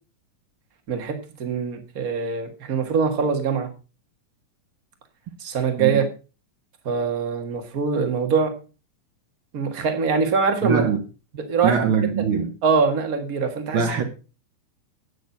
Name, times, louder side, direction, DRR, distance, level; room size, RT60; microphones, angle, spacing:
voice 1, 0.9-3.7 5.4-6.1 6.8-8.5 9.5-10.8 11.3-11.9 12.6-14.0, right 5 dB, 40° right, 1.2 m, -23 dB
voice 2, 10.6-11.0 11.6-12.5 13.7-14.0, right 7 dB, 80° right, 1.1 m, -22 dB
9.1 x 8.8 x 5.4 m
omnidirectional pair, 4.0 m